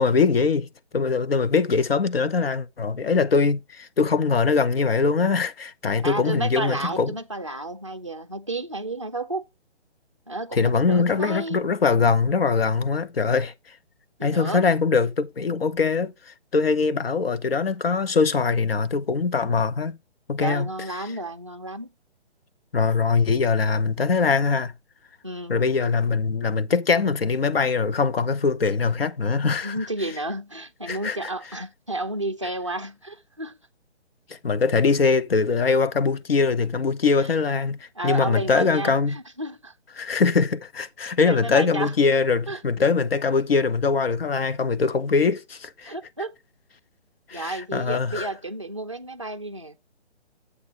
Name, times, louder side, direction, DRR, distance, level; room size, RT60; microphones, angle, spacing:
voice 1, 0.0-7.1 10.5-13.5 14.2-20.0 20.3-20.7 21.0-21.1 22.7-24.7 25.5-29.8 30.9-31.3 34.3-39.2 40.0-45.9 47.3-48.3, left 4 dB, 60° left, 0.9 m, -22 dB
voice 2, 6.0-9.4 10.3-11.6 14.2-14.6 20.4-21.9 25.2-25.6 29.6-33.6 38.0-39.7 41.3-41.9 42.5-42.6 45.8-46.3 47.3-49.8, right 2 dB, 30° right, 0.4 m, -32 dB
9.4 x 8.3 x 2.8 m
hypercardioid pair, 175°, 34 cm